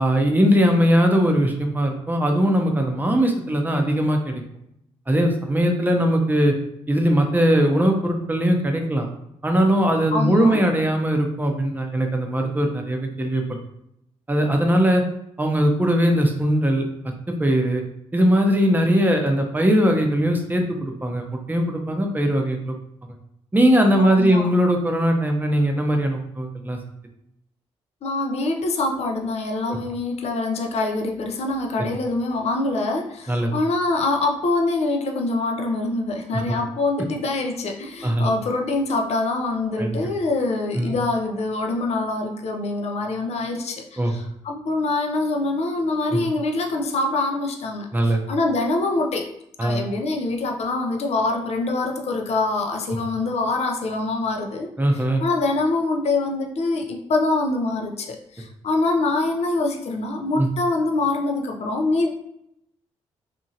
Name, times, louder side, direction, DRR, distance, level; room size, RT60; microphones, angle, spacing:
voice 1, 0.0-4.4 5.1-6.5 6.9-9.1 9.4-13.4 14.3-15.0 15.4-16.9 17.3-17.8 18.1-22.7 23.5-26.8 29.7-29.8 33.3-33.5 36.3-36.6 38.0-38.3 39.8-40.0 40.7-40.9 44.0-44.1 46.1-46.2 47.9-48.2 49.6-49.8 54.8-55.2 60.3-60.5, equal, 15° right, 3 dB, 0.6 m, -20 dB
voice 2, 10.1-10.6 24.0-24.5 28.0-49.3 49.6-54.7 55.2-62.1, left 2 dB, 60° left, 3 dB, 0.5 m, -24 dB
2.8 x 2.5 x 2.8 m, 0.79 s
supercardioid pair, 50°, 13 cm